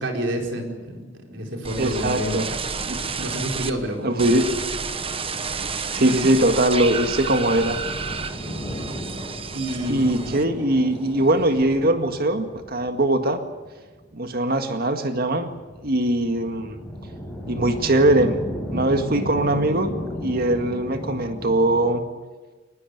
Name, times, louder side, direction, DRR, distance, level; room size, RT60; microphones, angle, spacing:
voice 1, 0.0-2.5 2.9-4.2 9.5-10.3, right 1 dB, 70° right, 2 dB, 4.6 m, -29 dB
sound 1, 1.6-3.7 4.2-10.7 11.0-11.6, right 5 dB, 30° right, 1.2 m, -30 dB
voice 2, 1.8-2.5 2.8-3.2 4.0-4.5 5.9-7.8 9.9-13.4 14.1-15.5 15.8-16.8 17.5-18.4 18.7-19.9 20.2-22.0, right 1 dB, 50° right, 7 dB, 1.9 m, -21 dB
sound 2, 4.8-22.0, equal, 5° left, 6.5 m, -35 dB
22.5 x 20.0 x 8.2 m, 1.3 s
head